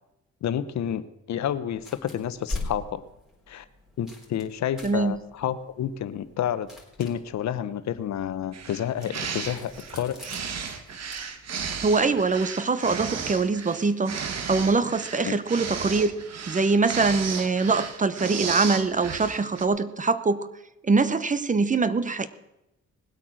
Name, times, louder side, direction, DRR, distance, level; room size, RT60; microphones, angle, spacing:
voice 1, 0.4-3.0 3.5-3.6 4.0-6.7 7.0-10.2 15.2-15.3, left 10 dB, 65° left, 13 dB, 0.9 m, -30 dB
sound 1, 1.7-11.8, left 2 dB, ahead, 3.8 m, -42 dB
voice 2, 4.8-5.2 11.8-20.5 20.8-22.3, right 4 dB, 25° right, 15 dB, 0.8 m, -23 dB
sound 2, 8.5-19.6, right 6 dB, 60° right, 1.6 m, -34 dB
19.5 x 8.3 x 6.3 m, 0.90 s
cardioid pair, 90°, 30 cm